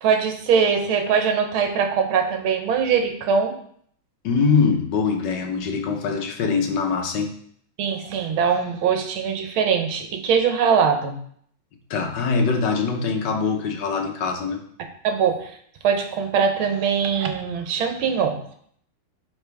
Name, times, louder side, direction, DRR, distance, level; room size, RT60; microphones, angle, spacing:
voice 1, 0.0-3.5 7.8-11.2 15.0-15.5 15.8-18.4, right 6 dB, 80° right, 5 dB, 1.7 m, -22 dB
voice 2, 4.2-7.3 11.9-14.6, left 5 dB, 65° left, 4 dB, 1.4 m, -23 dB
11.5 x 4.1 x 3.4 m, 0.63 s
omnidirectional pair, 2.2 m